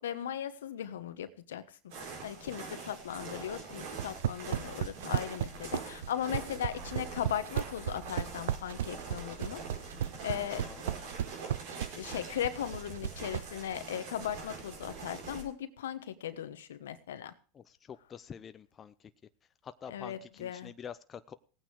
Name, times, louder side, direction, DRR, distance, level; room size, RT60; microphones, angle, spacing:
voice 1, 0.0-9.6 10.2-10.6 12.0-17.3 19.9-20.7, left 10 dB, 85° left, 11 dB, 1.2 m, -38 dB
sound 1, 1.9-15.4, right 4 dB, 70° right, 5.1 m, -44 dB
sound 2, 3.9-13.5, right 11 dB, 85° right, 0.6 m, -34 dB
voice 2, 10.5-10.9 17.5-19.1 19.6-21.3, left 8 dB, 30° left, 11 dB, 0.7 m, -47 dB
17.5 x 8.9 x 4.8 m, 0.39 s
hypercardioid pair, 105°, 0 cm